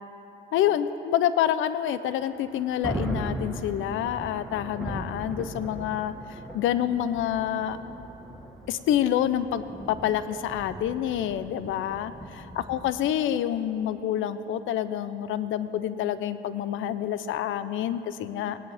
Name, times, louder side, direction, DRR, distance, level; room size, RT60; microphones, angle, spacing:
voice 1, 0.5-6.1 6.5-7.8 8.7-12.1 12.6-18.6, left 10 dB, 80° left, 13 dB, 0.6 m, -27 dB
Thunder, 2.2-12.9, right 1 dB, ahead, 1.5 m, -38 dB
19.0 x 9.9 x 3.5 m, 2.9 s
cardioid pair, 90°, 20 cm